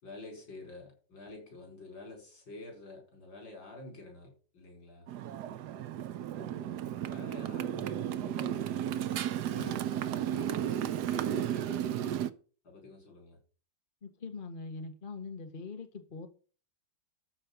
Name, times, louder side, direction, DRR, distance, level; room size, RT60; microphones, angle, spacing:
voice 1, 0.0-5.1 6.3-8.8 9.4-12.0 12.6-13.4, left 2 dB, 90° left, 1 dB, 5.5 m, -48 dB
Motorcycle, 5.1-12.3, right 10 dB, 70° right, 1.2 m, -34 dB
voice 2, 14.0-16.3, left 4 dB, 30° left, 6 dB, 1.5 m, -42 dB
13.0 x 4.5 x 6.8 m, 0.39 s
omnidirectional pair, 2.0 m